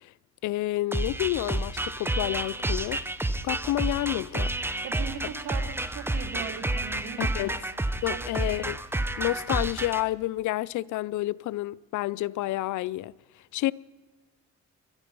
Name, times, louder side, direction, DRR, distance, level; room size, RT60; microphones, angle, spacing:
voice 1, 0.4-3.0 3.4-4.5 7.2-7.6 8.0-8.8 9.2-13.1 13.5-13.7, left 16 dB, 80° left, 0.5 m, -29 dB
sound 1, 0.9-10.0, right 2 dB, 10° right, 0.8 m, -30 dB
voice 2, 4.8-7.8 8.1-8.6, right 7 dB, 80° right, 1.9 m, -39 dB
22.5 x 12.0 x 5.3 m
cardioid pair, 90°, 30 cm